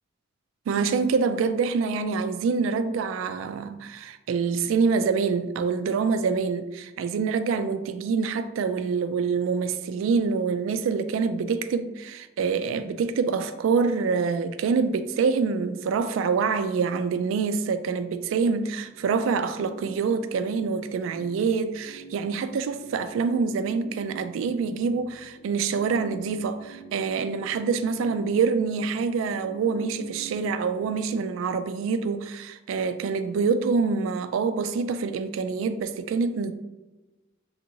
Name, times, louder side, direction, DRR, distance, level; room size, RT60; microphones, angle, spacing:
voice 1, 0.7-36.5, right 5 dB, 90° right, 0.3 m, -26 dB
sound 1, 18.5-31.0, right 4 dB, 60° left, 0.6 m, -47 dB
3.4 x 2.9 x 2.6 m
head